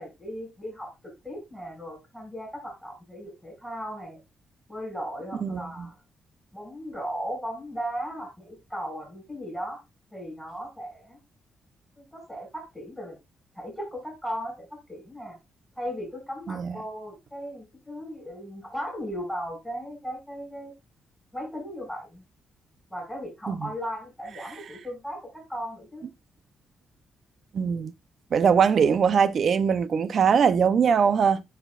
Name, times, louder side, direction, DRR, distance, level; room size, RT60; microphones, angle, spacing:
voice 1, 0.0-4.2 4.7-5.9 6.5-9.8 10.1-11.2 12.0-13.2 13.6-15.4 15.8-20.7 21.3-22.2 22.9-26.1, equal, 5° left, 5.4 m, -37 dB
voice 2, 5.4-5.9 16.5-16.8 23.5-23.6 27.5-27.9 28.3-31.4, right 6 dB, 55° right, 0.7 m, -22 dB
13.0 x 4.4 x 2.5 m
cardioid pair, 95°, 0 cm